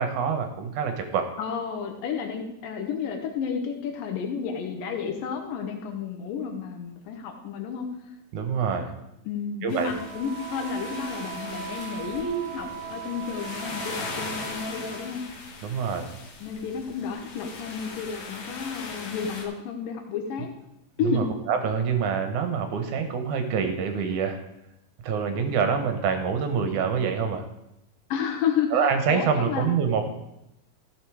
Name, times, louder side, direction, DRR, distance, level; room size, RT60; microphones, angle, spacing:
voice 1, 0.0-1.3 8.3-9.0 9.6-9.9 15.6-16.1 21.0-24.4 25.0-27.5 28.7-30.1, right 6 dB, 70° right, 7 dB, 2.3 m, -26 dB
voice 2, 1.4-7.9 9.3-15.2 16.4-20.5 21.0-21.3 28.1-28.7 29.1-29.7, left 6 dB, 85° left, 4 dB, 2.7 m, -31 dB
sound 1, 9.7-19.4, left 3 dB, 60° left, 2.4 m, -39 dB
Wind instrument woodwind instrument, 9.9-15.2, right 8 dB, 45° right, 2.3 m, -39 dB
14.0 x 6.3 x 4.7 m, 0.83 s
omnidirectional pair, 3.8 m